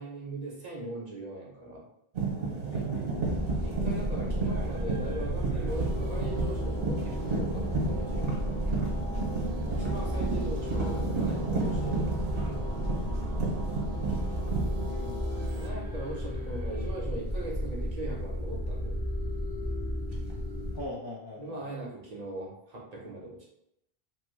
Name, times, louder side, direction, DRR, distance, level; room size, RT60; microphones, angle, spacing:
voice 1, 0.0-1.9 3.6-8.6 9.7-12.2 15.5-19.0 21.4-23.5, right 2 dB, 45° right, -3 dB, 0.7 m, -40 dB
sound 1, 2.1-15.6 15.9-16.4 18.1-18.3 20.1-20.7, right 3 dB, 65° right, 1.0 m, -33 dB
voice 2, 2.7-3.1 14.8-15.8 20.7-21.8, left 2 dB, 45° left, -4 dB, 0.3 m, -43 dB
sound 2, 3.1-20.9, left 1 dB, 10° right, 0.6 m, -33 dB
sound 3, 5.7-15.7, right 3 dB, 90° right, 0.8 m, -41 dB
3.0 x 2.1 x 3.1 m, 0.77 s
omnidirectional pair, 1.0 m